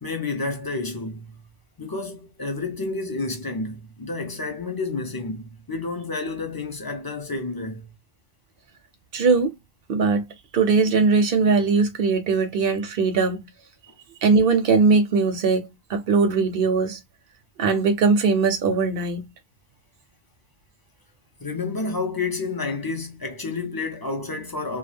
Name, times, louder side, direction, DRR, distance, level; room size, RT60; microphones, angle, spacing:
voice 1, 0.0-1.4 1.8-7.9 21.4-24.8, left 3 dB, 30° left, 0.5 m, -30 dB
voice 2, 9.1-9.5 9.9-10.2 10.5-13.4 14.2-17.0 17.6-19.3, right 4 dB, 65° right, 0.7 m, -20 dB
2.3 x 2.3 x 3.2 m
omnidirectional pair, 1.1 m